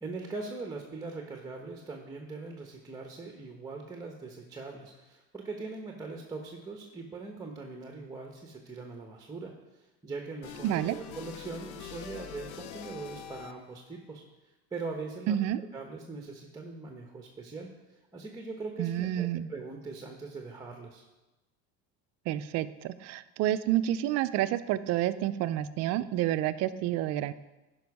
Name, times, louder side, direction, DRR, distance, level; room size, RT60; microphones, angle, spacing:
voice 1, 0.0-14.2 14.7-15.4 15.7-21.0, right 3 dB, 10° right, 2 dB, 1.0 m, -41 dB
sound 1, 10.4-13.8, left 8 dB, 85° left, 0.8 m, -44 dB
voice 2, 10.6-11.0 15.3-15.6 18.8-19.5 22.3-27.3, right 12 dB, 50° right, 13 dB, 0.5 m, -29 dB
12.5 x 5.3 x 4.8 m, 1.1 s
supercardioid pair, 130°, 34 cm